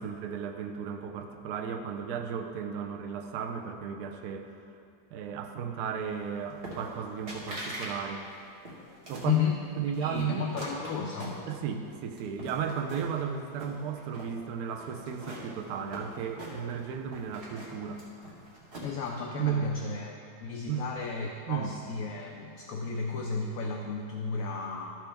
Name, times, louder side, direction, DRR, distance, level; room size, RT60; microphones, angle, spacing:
voice 1, 0.0-4.5 5.1-8.3 9.1-9.4 9.8-10.5 11.5-18.0 19.3-19.7 20.7-20.9 21.5-21.7, right 7 dB, 70° right, 5 dB, 1.0 m, -34 dB
sound 1, 6.6-7.0 7.3-7.9 8.2-9.3 9.9-11.8 12.2-13.2 13.5-14.3 14.8-16.8 17.1-19.1, right 1 dB, 40° right, 1.6 m, -42 dB
voice 2, 9.2-9.6 10.0-11.4 18.8-24.9, left 6 dB, 70° left, 1 dB, 0.9 m, -33 dB
12.5 x 6.2 x 3.4 m, 2.5 s
omnidirectional pair, 1.9 m